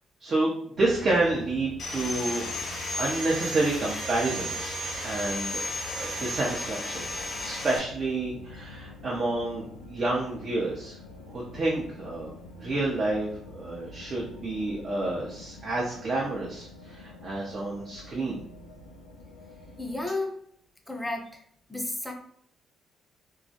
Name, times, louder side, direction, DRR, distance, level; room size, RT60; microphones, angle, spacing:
voice 1, 0.2-0.5 0.8-2.5 2.9-5.6 6.0-7.1 7.4-9.6 9.9-11.0 11.3-12.3 12.6-18.4, right 2 dB, 45° right, -5 dB, 0.6 m, -29 dB
sound 1, 0.8-20.0, left 1 dB, 85° left, 0.3 m, -46 dB
Sawing, 1.8-7.8, equal, 55° left, 0.6 m, -34 dB
voice 2, 19.8-20.4 20.9-21.4 21.7-22.1, left 2 dB, 10° left, 2 dB, 0.6 m, -32 dB
2.2 x 2.1 x 2.7 m, 0.66 s
hypercardioid pair, 45°, 0 cm